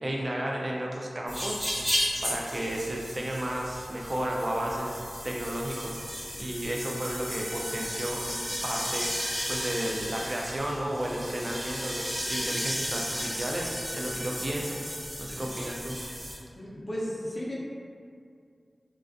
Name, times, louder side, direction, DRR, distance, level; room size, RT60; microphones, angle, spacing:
voice 1, 0.0-9.1 9.5-14.8 15.2-16.0, right 1 dB, 50° right, -2 dB, 0.3 m, -33 dB
sound 1, 1.3-16.4, equal, 5° left, 1.0 m, -34 dB
voice 2, 16.6-17.6, equal, 50° left, -7 dB, 0.6 m, -34 dB
2.3 x 2.2 x 2.4 m, 2.3 s
wide cardioid pair, 50°, 0 cm